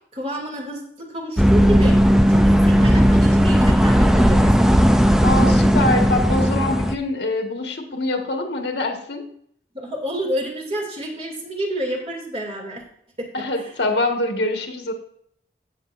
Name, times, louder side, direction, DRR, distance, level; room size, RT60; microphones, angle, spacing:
voice 1, 0.1-2.0 2.3-4.8 9.7-12.8 13.2-13.3 13.5-13.7, right 1 dB, 35° right, -1 dB, 2.6 m, -29 dB
sound 1, 1.4-7.0, equal, 5° right, 0.5 m, -15 dB
voice 2, 5.2-9.3 13.3-14.9, left 2 dB, 80° left, 3 dB, 1.7 m, -24 dB
15.5 x 7.2 x 2.6 m, 0.68 s
head